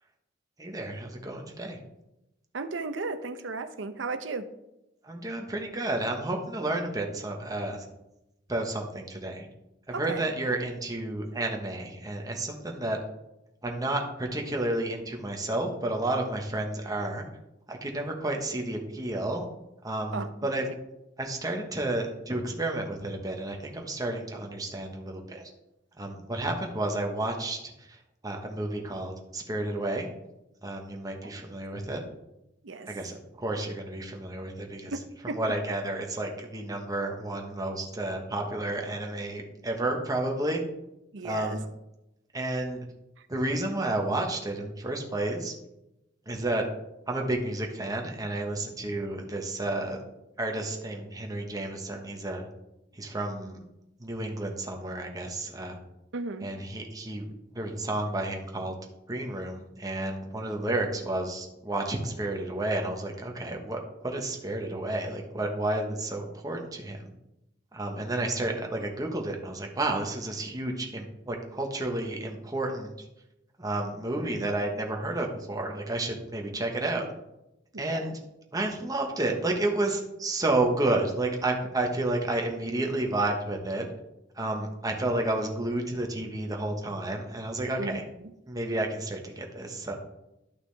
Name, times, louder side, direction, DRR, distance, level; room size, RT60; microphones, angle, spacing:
voice 1, 0.6-1.8 5.0-7.9 8.5-9.5 9.9-13.0 13.6-17.3 17.7-19.4 19.8-20.6 21.2-25.5 26.0-28.0 28.2-30.1 30.6-32.0 32.9-34.9 35.3-40.6 41.2-41.6 42.3-42.8 43.3-45.5 46.3-46.7 47.1-50.0 50.4-52.4 52.9-53.6 54.0-55.8 56.4-57.2 57.5-58.7 59.1-67.0 67.7-72.9 73.6-77.1 77.8-78.1 78.5-83.9 84.4-88.0 88.5-90.0, right 2 dB, 20° right, 2 dB, 1.2 m, -31 dB
voice 2, 2.5-4.5 9.9-10.2 20.1-20.5 31.2-31.3 32.6-32.9 34.9-35.5 41.1-41.6 43.2-43.3 56.1-56.5 77.7-78.2 87.8-88.3, right 3 dB, 75° right, 10 dB, 0.7 m, -35 dB
11.5 x 6.0 x 3.4 m, 0.89 s
head